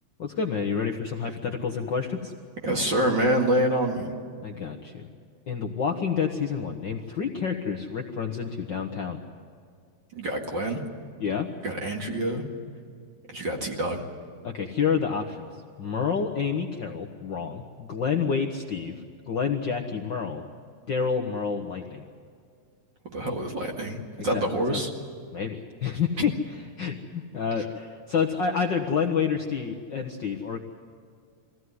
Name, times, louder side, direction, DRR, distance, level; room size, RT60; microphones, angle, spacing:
voice 1, 0.2-2.3 4.4-5.0 5.5-9.2 11.2-11.5 14.4-15.5 15.8-20.4 20.9-22.0 24.2-24.8 25.3-30.6, left 6 dB, 60° left, 3 dB, 1.2 m, -29 dB
voice 2, 2.6-4.1 10.2-10.8 11.6-12.4 13.3-14.0 23.1-24.9, right 1 dB, 40° right, 1 dB, 2.4 m, -26 dB
22.5 x 16.0 x 9.6 m, 2.3 s
omnidirectional pair, 3.5 m